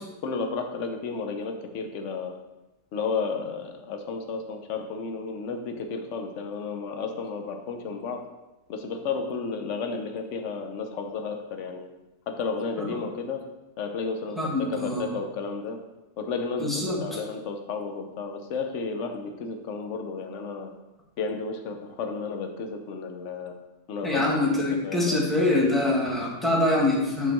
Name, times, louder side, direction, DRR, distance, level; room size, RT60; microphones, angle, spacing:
voice 1, 0.2-2.4 2.9-8.3 8.7-11.9 12.3-13.4 13.8-15.8 16.2-20.7 21.2-23.6 23.9-25.2, left 4 dB, 55° left, 5 dB, 1.0 m, -32 dB
voice 2, 14.4-15.0 16.6-17.0 24.0-27.3, left 2 dB, ahead, -4 dB, 1.3 m, -24 dB
8.9 x 4.0 x 4.5 m, 1.0 s
omnidirectional pair, 1.7 m